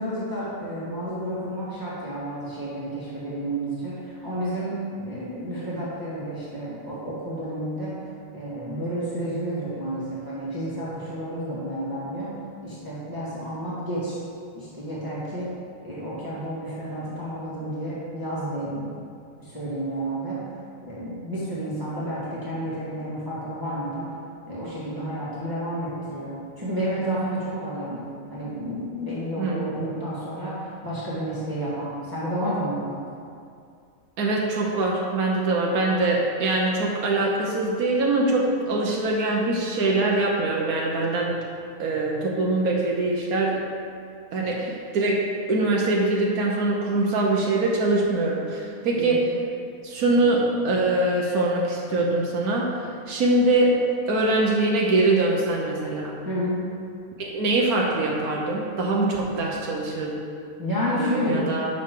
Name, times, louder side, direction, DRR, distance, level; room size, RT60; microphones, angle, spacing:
voice 1, 0.0-7.9 8.3-12.3 12.6-14.2 14.5-15.5 15.8-19.0 19.4-20.4 20.8-24.1 24.5-28.0 28.3-33.0 49.0-49.1 56.2-56.7 60.6-61.5, equal, 15° right, -9 dB, 1.8 m, -30 dB
voice 2, 34.2-41.4 41.8-43.6 44.3-49.2 49.8-53.8 54.1-56.2 57.2-60.1 61.0-61.7, right 2 dB, 85° right, -2 dB, 1.4 m, -23 dB
10.5 x 6.6 x 3.8 m, 2.4 s
omnidirectional pair, 1.5 m